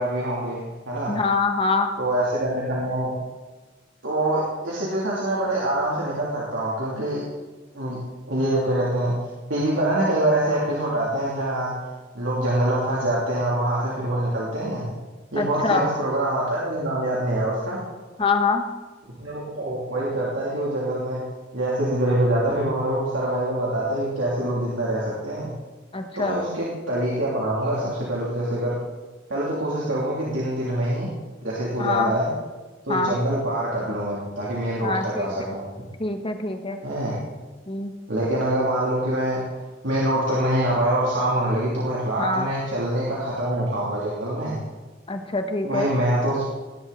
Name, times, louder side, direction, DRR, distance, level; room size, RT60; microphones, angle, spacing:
voice 1, 0.0-1.2 2.0-3.1 4.0-7.2 7.7-8.0 8.3-9.1 9.5-11.7 12.1-14.9 15.3-17.8 19.2-21.2 21.5-25.5 26.1-28.8 29.3-31.1 31.4-32.3 32.8-35.7 36.8-37.2 38.1-39.4 39.8-44.6 45.6-46.4, right 1 dB, 85° right, -6 dB, 3.2 m, -25 dB
voice 2, 1.1-1.9 15.4-15.8 18.2-18.6 25.9-26.4 31.8-32.1 32.9-33.2 34.8-35.3 36.0-36.8 37.7-37.9 42.2-42.5 45.1-45.9, left 4 dB, 30° left, 5 dB, 1.4 m, -24 dB
20.0 x 11.0 x 4.2 m, 1.2 s
head